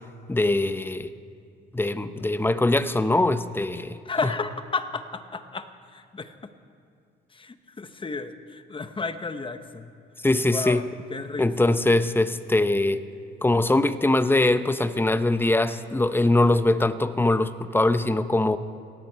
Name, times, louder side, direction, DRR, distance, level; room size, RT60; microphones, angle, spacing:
voice 1, 0.3-1.1 1.7-4.3 10.2-10.8 11.4-13.0 13.4-18.6, left 2 dB, 10° left, 12 dB, 0.7 m, -22 dB
voice 2, 4.1-6.3 7.3-9.9 10.5-10.8 11.1-11.7, left 4 dB, 25° left, 10 dB, 1.0 m, -32 dB
17.5 x 17.0 x 4.6 m, 2.4 s
cardioid pair, 90°, 20 cm